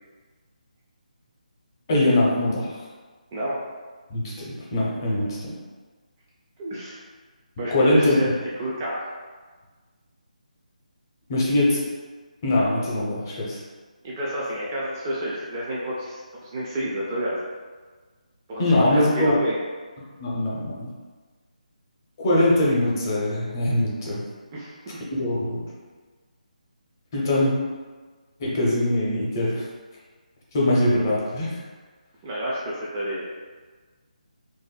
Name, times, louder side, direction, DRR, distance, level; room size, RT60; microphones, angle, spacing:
voice 1, 1.9-2.8 4.1-5.5 7.7-8.2 11.3-11.8 12.4-13.6 18.6-19.4 20.2-20.9 22.2-24.2 25.1-25.6 27.1-27.5 28.4-29.6 30.5-31.5, left 1 dB, 25° left, -5 dB, 0.6 m, -22 dB
voice 2, 3.3-3.6 6.6-7.0 7.6-8.3 8.6-9.1 14.0-17.4 18.5-19.6 24.5-25.0 32.2-33.2, right 1 dB, 20° right, -6 dB, 0.3 m, -29 dB
3.9 x 2.5 x 2.2 m, 1.4 s
figure-of-eight pair, 165°, 4 cm